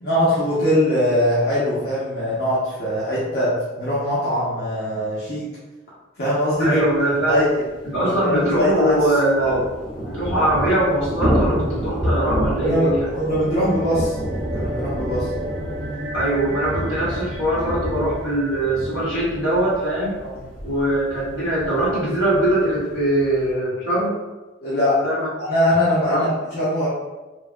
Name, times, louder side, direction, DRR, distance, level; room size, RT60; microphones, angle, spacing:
voice 1, 0.0-5.5 6.2-6.8 7.3-7.5 8.0-8.9 9.4-9.6 12.6-14.2 14.5-15.3 20.2-20.4 24.6-25.0 25.4-26.9, equal, 55° left, -9 dB, 0.8 m, -21 dB
voice 2, 6.6-7.4 7.8-9.6 10.1-13.1 16.1-20.2 20.6-24.2 25.0-25.3 26.1-26.3, right 1 dB, 85° left, -7 dB, 1.2 m, -21 dB
Thunder / Rain, 6.9-7.0 7.2-7.3 7.6-23.5, equal, 5° left, 0.6 m, -29 dB
sound 1, 12.9-19.6, right 1 dB, 65° right, 0.3 m, -35 dB
3.2 x 2.2 x 2.4 m, 1.1 s
head